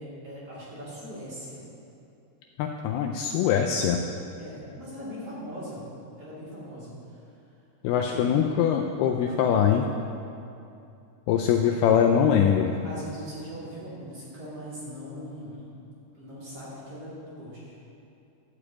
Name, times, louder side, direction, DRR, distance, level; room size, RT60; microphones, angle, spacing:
voice 1, 0.0-1.6 4.4-5.8 6.2-7.2 7.9-8.3 12.8-15.6 16.1-17.7, equal, 40° right, -9 dB, 3.1 m, -40 dB
voice 2, 2.6-4.0 7.8-9.9 11.3-12.7, left 8 dB, 85° left, 2 dB, 2.3 m, -22 dB
12.0 x 5.1 x 8.4 m, 2.6 s
omnidirectional pair, 4.9 m